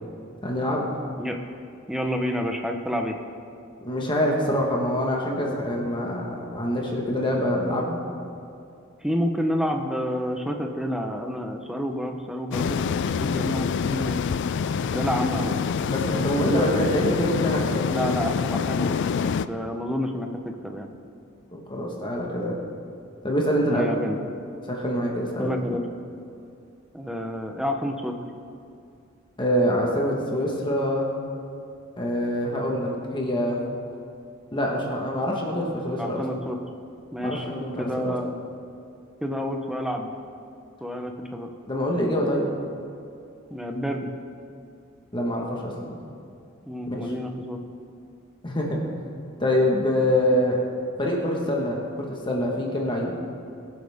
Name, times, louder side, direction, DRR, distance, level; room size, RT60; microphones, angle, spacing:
voice 1, 0.4-0.9 3.8-8.0 15.9-17.8 21.5-22.6 23.2-23.8 24.7-25.5 29.4-31.0 32.0-33.6 34.5-36.2 37.2-38.1 41.7-42.5 45.1-46.0 46.9-47.0 48.4-48.8 49.4-50.6 51.0-53.2, equal, 25° left, -1 dB, 1.4 m, -25 dB
voice 2, 1.9-3.2 9.0-14.2 14.9-15.6 17.9-20.9 23.7-24.2 25.4-25.8 26.9-28.2 36.0-36.6 37.1-37.5 37.8-38.3 39.2-40.1 40.8-41.5 43.5-44.1 46.7-47.6, equal, 5° right, 3 dB, 0.9 m, -29 dB
sound 1, 12.5-19.5, left 6 dB, 60° left, 0.3 m, -26 dB
22.0 x 7.8 x 3.6 m, 2.5 s
head